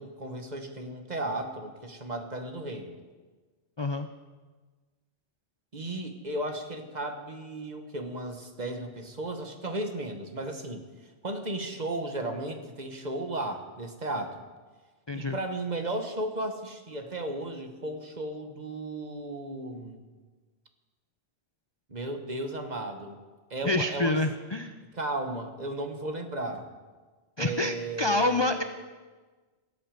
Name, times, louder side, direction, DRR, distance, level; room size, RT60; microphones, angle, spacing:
voice 1, 0.0-3.0 5.7-14.4 15.1-20.1 21.9-23.2 23.5-24.2 24.9-26.7 27.4-28.6, right 1 dB, 40° right, 5 dB, 1.5 m, -35 dB
voice 2, 3.8-4.1 15.1-15.4 23.6-24.7 27.4-28.6, left 2 dB, 30° left, 8 dB, 0.5 m, -27 dB
17.5 x 8.3 x 7.6 m, 1.3 s
omnidirectional pair, 1.2 m